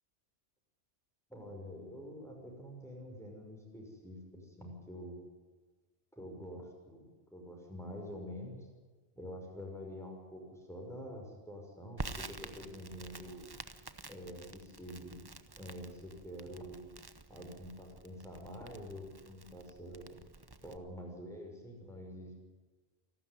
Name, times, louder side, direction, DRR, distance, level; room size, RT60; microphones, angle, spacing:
voice 1, 1.3-5.2 6.1-8.6 9.2-13.4 14.1-15.2 15.5-16.9 17.3-20.2 20.6-22.3, equal, ahead, 0 dB, 6.1 m, -47 dB
Crackle, 12.0-20.8, right 3 dB, 20° right, 0.9 m, -49 dB
28.0 x 12.5 x 9.6 m, 1.4 s
omnidirectional pair, 1.2 m